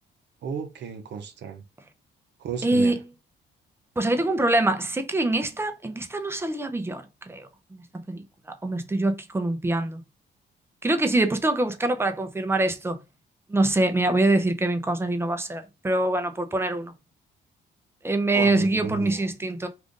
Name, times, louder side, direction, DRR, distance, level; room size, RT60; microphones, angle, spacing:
voice 1, 0.4-1.6 2.4-3.0 18.3-19.3, right 6 dB, 60° right, 0.7 m, -34 dB
voice 2, 2.6-3.0 4.0-8.2 8.6-10.0 10.8-13.0 13.5-16.9 18.0-19.7, right 2 dB, 10° right, 0.5 m, -24 dB
2.5 x 2.5 x 3.6 m
cardioid pair, 90°, 20 cm